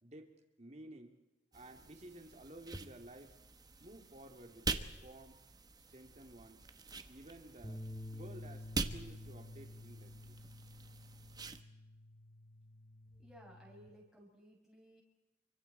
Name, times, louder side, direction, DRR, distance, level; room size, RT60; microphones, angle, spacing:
voice 1, 0.0-0.3 0.6-1.1 1.5-3.4 3.8-5.4 5.9-6.7 7.1-10.4, right 1 dB, 40° right, 4 dB, 2.9 m, -54 dB
sound 1, 1.5-11.6, right 3 dB, 25° right, 1.2 m, -45 dB
sound 2, 7.6-13.9, left 1 dB, 20° left, 2.1 m, -50 dB
voice 2, 13.1-15.0, equal, ahead, -5 dB, 7.0 m, -59 dB
29.5 x 25.0 x 4.4 m, 1.0 s
head